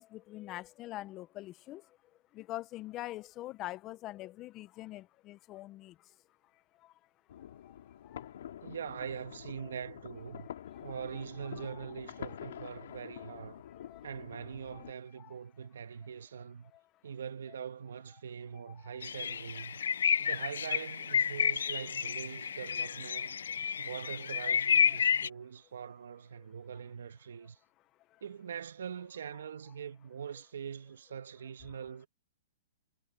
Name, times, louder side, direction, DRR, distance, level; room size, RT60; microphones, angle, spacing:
voice 1, 0.0-2.0 2.3-6.0 6.8-6.9 7.7-7.8 8.0-8.3 10.3-10.4 10.7-10.9 11.6-11.8 13.1-13.3 13.7-14.1 14.7-14.9 15.2-15.3 16.7-16.8 18.7-19.0 24.5-24.6, left 16 dB, 30° left, 0.7 m, -45 dB
sound 1, 7.3-14.9, left 10 dB, 70° left, 4.0 m, -47 dB
voice 2, 8.6-10.5 10.8-13.6 14.0-16.7 17.0-19.8 20.2-23.4 23.8-27.6 28.2-32.1, right 7 dB, 80° right, 1.4 m, -43 dB
sound 2, 19.0-25.3, left 7 dB, 85° left, 0.4 m, -30 dB
hypercardioid pair, 145°, 0 cm